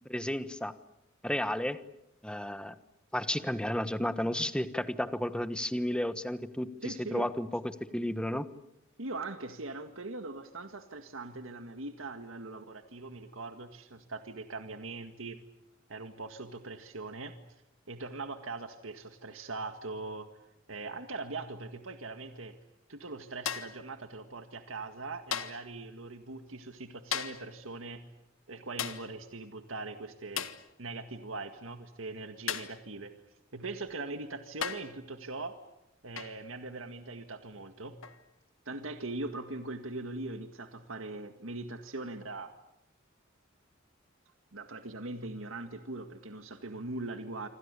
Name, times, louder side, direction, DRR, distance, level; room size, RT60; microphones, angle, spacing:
voice 1, 0.1-0.7 1.2-1.8 2.2-2.7 3.1-8.5, left 1 dB, 5° left, 12 dB, 1.3 m, -32 dB
voice 2, 6.8-7.3 9.0-15.4 15.9-17.4 17.9-20.3 20.7-22.6 22.9-28.1 28.5-30.5 30.8-33.1 33.5-35.6 36.0-38.0 38.7-42.5 44.5-47.5, right 3 dB, 85° right, 7 dB, 1.9 m, -41 dB
sound 1, 23.5-23.9 25.3-25.7 27.1-27.5 28.8-29.1 30.4-30.7 32.5-32.8 33.9-34.0 34.6-35.0 36.2-36.4 38.0-38.2, left 8 dB, 85° left, 1.7 m, -36 dB
27.0 x 25.5 x 8.4 m, 0.85 s
head